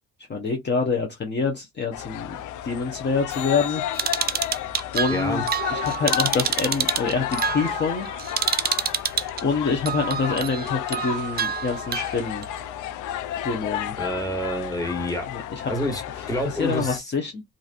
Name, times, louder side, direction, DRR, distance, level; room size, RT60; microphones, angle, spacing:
voice 1, 0.3-3.8 4.9-8.1 9.4-12.4 13.4-13.9 15.3-15.7 16.1-16.3 16.6-17.4, left 4 dB, 35° left, 0.8 m, -26 dB
sound 1, 1.9-17.0, left 11 dB, 85° left, 0.5 m, -32 dB
sound 2, 3.3-7.8 14.3-14.4, left 11 dB, 55° left, 1.5 m, -42 dB
sound 3, 4.0-9.4 9.9-12.5, right 8 dB, 35° right, 0.4 m, -27 dB
voice 2, 5.1-5.4 14.0-15.3 15.7-16.0 16.3-17.0, equal, 10° left, 1.4 m, -27 dB
2.9 x 2.6 x 2.4 m
cardioid pair, 90°, 30 cm